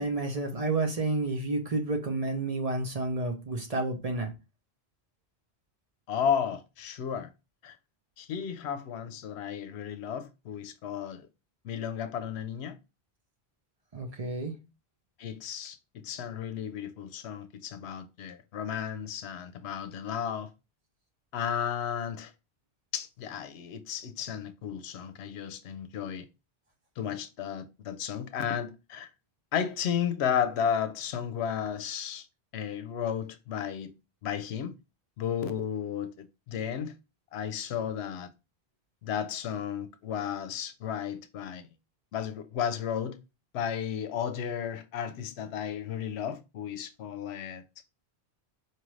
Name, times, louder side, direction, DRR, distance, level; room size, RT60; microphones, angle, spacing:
voice 1, 0.0-4.3 13.9-14.5, right 2 dB, 40° right, 0.8 m, -30 dB
voice 2, 6.1-7.3 7.6-7.8 8.2-11.3 11.6-12.8 15.2-20.5 21.3-22.3 22.9-26.3 27.0-29.1 29.5-32.3 32.5-33.9 34.2-34.7 35.2-36.9 37.3-38.3 39.0-41.7 42.1-43.2 43.5-47.6, left 8 dB, 80° left, 0.8 m, -33 dB
4.4 x 2.5 x 3.1 m
omnidirectional pair, 1.1 m